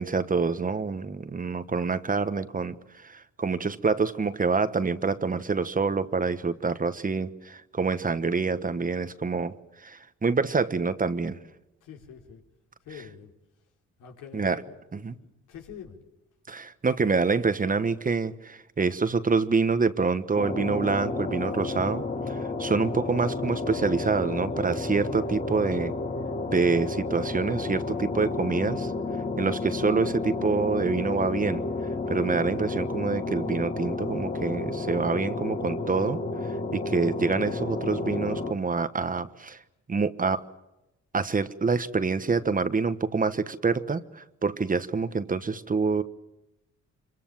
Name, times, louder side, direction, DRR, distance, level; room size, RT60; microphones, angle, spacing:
voice 1, 0.0-9.5 9.8-11.4 14.3-14.6 14.9-15.1 16.5-25.9 26.5-28.9 29.4-31.6 32.1-39.6 39.9-40.4 41.1-46.0, right 4 dB, 30° right, 12 dB, 1.2 m, -26 dB
voice 2, 11.8-12.4 12.8-13.3 14.0-14.8 15.1-16.0, left 7 dB, 85° left, 2 dB, 4.1 m, -45 dB
sound 1, 20.4-38.5, left 3 dB, 25° left, 1.8 m, -31 dB
25.5 x 23.5 x 7.5 m, 0.95 s
cardioid pair, 90°, 30 cm